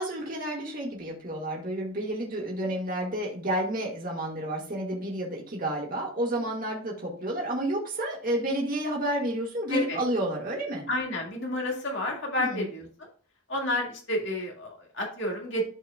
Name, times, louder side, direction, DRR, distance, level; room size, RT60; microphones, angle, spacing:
voice 1, 0.0-10.9 12.4-12.6, right 1 dB, 40° right, -1 dB, 1.9 m, -30 dB
voice 2, 9.7-10.0 10.9-13.1 13.5-15.6, left 1 dB, 55° left, 0 dB, 2.1 m, -30 dB
12.0 x 4.6 x 2.4 m, 0.42 s
head